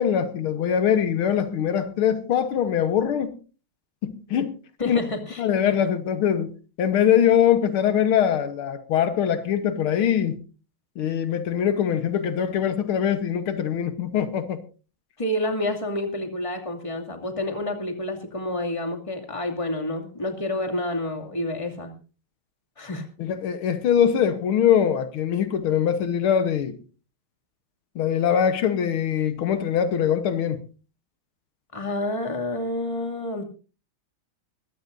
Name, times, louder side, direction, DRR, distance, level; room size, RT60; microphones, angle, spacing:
voice 1, 0.0-3.3 4.0-4.5 4.9-5.0 5.4-6.5 6.8-10.4 11.0-14.6 23.2-26.8 28.0-30.6, left 9 dB, 80° left, 1.9 m, -22 dB
voice 2, 4.8-5.7 15.2-21.9 22.8-23.1 31.7-33.4, left 1 dB, 15° left, 2.4 m, -29 dB
21.5 x 16.0 x 2.6 m
omnidirectional pair, 2.3 m